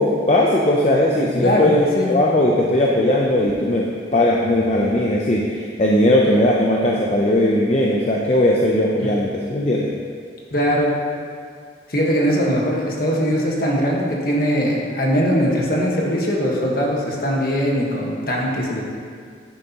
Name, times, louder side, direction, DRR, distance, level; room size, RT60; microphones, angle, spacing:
voice 1, 0.0-3.8 4.1-9.9, left 1 dB, 35° left, -2 dB, 0.6 m, -18 dB
voice 2, 1.4-2.1 9.0-9.1 10.5-10.9 11.9-18.9, equal, 50° left, -2 dB, 1.4 m, -21 dB
9.9 x 9.2 x 3.0 m, 2.1 s
head